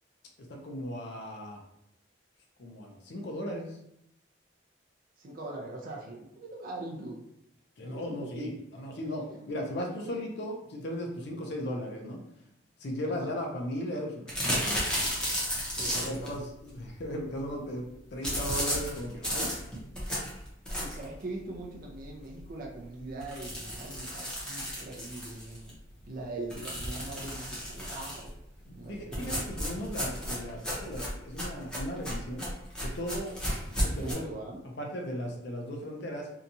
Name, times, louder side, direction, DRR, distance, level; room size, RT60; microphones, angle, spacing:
voice 1, 0.4-1.6 2.6-3.8 7.8-12.2 12.8-14.8 15.9-19.6 28.7-32.5 32.8-33.4 33.8-34.2 34.8-36.3, equal, 60° left, 1 dB, 0.5 m, -37 dB
voice 2, 5.2-7.2 7.8-8.5 9.0-9.5 13.1-13.3 15.7-16.4 20.8-28.4 28.7-29.5 34.0-34.6, right 2 dB, 50° right, -1 dB, 0.4 m, -42 dB
sound 1, 14.3-16.3 18.2-21.1 21.6-21.7 22.0-22.1 22.4-22.5 23.2-25.7 26.5-28.3 29.1-34.1, equal, 5° left, 0.7 m, -33 dB
2.8 x 2.3 x 2.6 m, 0.76 s
head